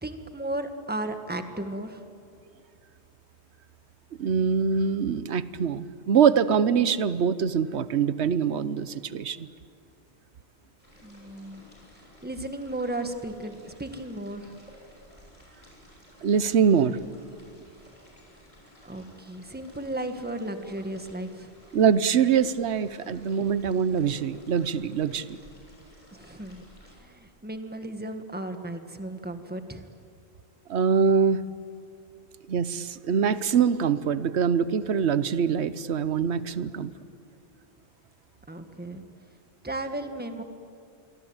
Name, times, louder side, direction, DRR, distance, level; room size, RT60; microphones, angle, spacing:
voice 1, 0.0-2.0 11.0-11.6 11.9-14.5 18.8-21.5 26.1-26.7 27.0-29.9 38.5-39.0 39.6-40.4, right 1 dB, 10° right, 7 dB, 1.5 m, -35 dB
voice 2, 4.2-9.5 16.2-17.0 21.7-25.4 30.7-31.4 32.5-36.9, right 7 dB, 90° right, 15 dB, 1.1 m, -24 dB
sound 1, 10.8-27.0, left 1 dB, 30° left, 7.3 m, -54 dB
28.0 x 23.0 x 8.9 m, 2.4 s
omnidirectional pair, 1.1 m